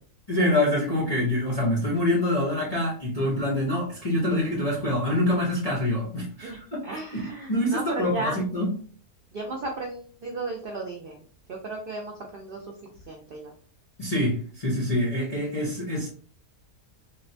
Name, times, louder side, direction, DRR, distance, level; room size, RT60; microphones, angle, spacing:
voice 1, 0.3-6.8 7.1-8.7 14.0-16.1, left 1 dB, 55° left, -5 dB, 0.4 m, -25 dB
voice 2, 6.8-8.4 9.3-11.2 11.5-12.6 13.1-13.5, right 2 dB, 90° right, 0 dB, 0.4 m, -34 dB
3.7 x 2.1 x 2.5 m, 0.44 s
omnidirectional pair, 1.7 m